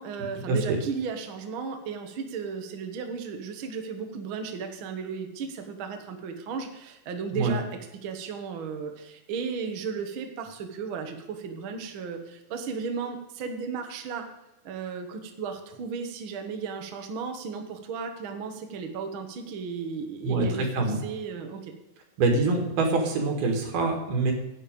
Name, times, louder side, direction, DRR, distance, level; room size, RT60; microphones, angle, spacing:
voice 1, 0.0-7.6 8.0-14.3 14.6-21.7, right 5 dB, 65° right, 5 dB, 1.3 m, -35 dB
voice 2, 20.2-21.0 22.2-24.3, right 3 dB, 85° right, 3 dB, 3.8 m, -25 dB
11.0 x 8.6 x 5.2 m, 0.95 s
omnidirectional pair, 4.2 m